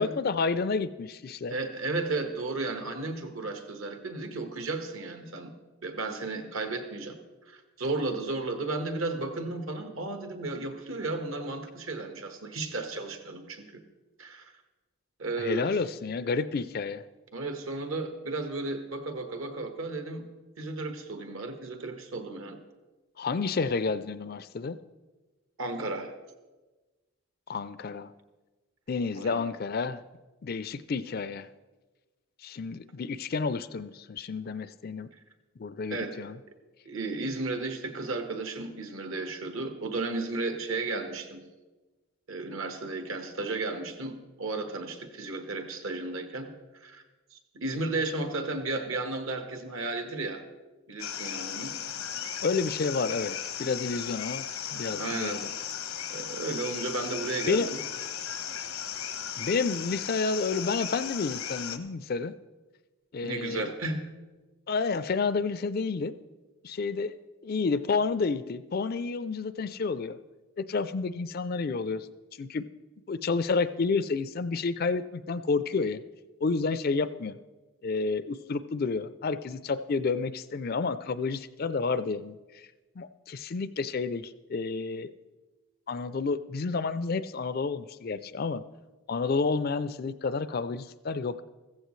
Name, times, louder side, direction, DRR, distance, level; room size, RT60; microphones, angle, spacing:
voice 1, 0.0-1.5 15.4-17.0 23.2-24.8 27.5-28.1 28.9-30.0 30.4-31.5 32.4-35.1 35.6-36.4 52.4-54.5 54.7-55.4 57.5-57.7 59.4-62.3 63.1-63.7 64.7-66.1 66.6-67.1 67.4-70.2 70.6-72.1 72.4-72.6 73.1-76.0 76.4-77.3 77.8-82.7 83.0-85.1 85.9-88.6 89.1-91.4, left 4 dB, 45° left, 14 dB, 0.4 m, -30 dB
voice 2, 1.5-5.5 5.8-7.2 7.5-13.8 14.2-14.5 15.2-15.8 17.3-20.2 20.6-22.6 25.6-26.1 29.1-29.5 35.9-36.2 36.8-41.4 42.3-46.5 46.8-47.0 47.3-50.4 50.9-51.7 54.8-55.4 56.1-57.8 63.2-64.1, right 3 dB, 70° right, 6 dB, 1.4 m, -34 dB
sound 1, 51.0-61.8, left 9 dB, 85° left, 0.9 m, -36 dB
15.0 x 14.5 x 3.2 m, 1.2 s
head